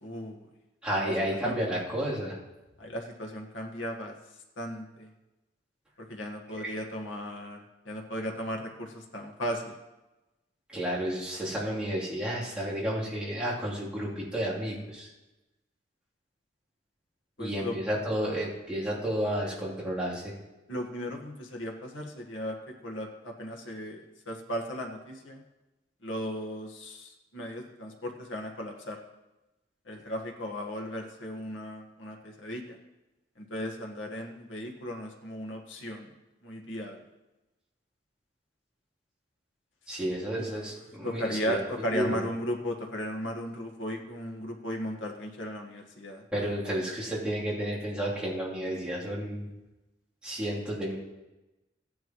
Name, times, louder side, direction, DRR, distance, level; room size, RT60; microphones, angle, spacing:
voice 1, 0.0-0.5 1.4-1.6 2.8-4.1 4.6-5.1 6.1-7.6 7.8-9.7 17.4-17.7 20.7-22.6 22.8-24.0 24.3-25.4 26.0-29.0 29.9-32.8 33.4-36.1 36.4-37.0 40.3-40.4 41.0-46.2, equal, 90° left, 1 dB, 1.6 m, -36 dB
voice 2, 0.8-2.4 6.5-6.7 10.7-15.1 17.4-20.3 39.9-41.6 41.9-42.2 46.3-49.5 50.2-51.0, right 1 dB, 5° right, -9 dB, 3.2 m, -31 dB
15.0 x 10.5 x 3.1 m, 1.0 s
head